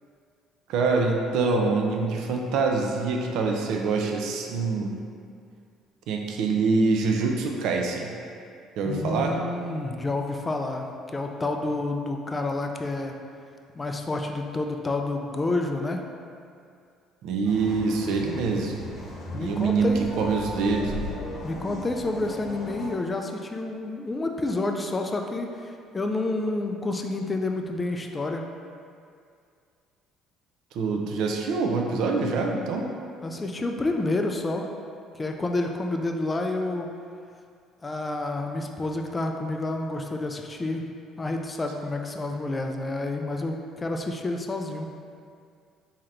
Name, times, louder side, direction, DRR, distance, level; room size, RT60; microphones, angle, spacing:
voice 1, 0.7-4.9 6.1-8.1 8.8-9.4 17.2-18.8 19.3-19.9 20.2-20.9 30.7-32.9, right 4 dB, 75° right, 1 dB, 0.4 m, -25 dB
voice 2, 8.8-13.1 13.8-16.1 19.3-20.1 21.4-28.5 33.2-34.7 35.1-36.9 37.8-40.9 41.2-44.9, left 2 dB, 20° left, 3 dB, 0.3 m, -29 dB
sound 1, 17.4-22.9, left 2 dB, 45° left, 0.7 m, -36 dB
3.6 x 2.8 x 3.2 m, 2.3 s
cardioid pair, 100°, 0 cm